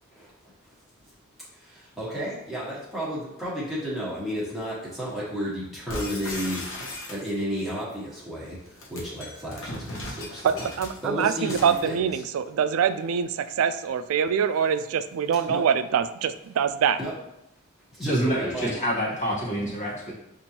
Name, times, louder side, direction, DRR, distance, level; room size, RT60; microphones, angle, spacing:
voice 1, 2.0-6.6 7.1-8.5 8.9-9.6 10.1-10.2 11.0-12.2 15.5-15.6 17.0-17.1 18.0-18.7, equal, ahead, -8 dB, 1.2 m, -32 dB
sound 1, 5.9-7.6 8.6-11.9, left 1 dB, 65° left, 0.8 m, -37 dB
voice 2, 10.4-17.0, right 7 dB, 85° right, 11 dB, 0.3 m, -24 dB
voice 3, 18.0-20.1, right 1 dB, 35° left, -5 dB, 1.1 m, -27 dB
6.9 x 2.5 x 2.8 m, 0.84 s
head